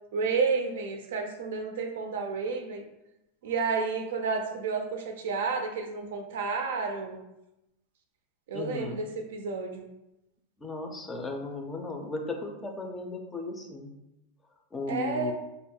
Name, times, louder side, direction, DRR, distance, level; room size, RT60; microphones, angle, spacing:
voice 1, 0.1-2.8 3.4-7.2 8.5-9.9 14.9-15.3, right 4 dB, 80° right, 4 dB, 0.4 m, -31 dB
voice 2, 8.5-9.0 10.6-13.9 14.7-15.3, left 3 dB, 15° left, 3 dB, 0.4 m, -36 dB
2.3 x 2.0 x 3.6 m, 0.90 s
supercardioid pair, 120°, 0 cm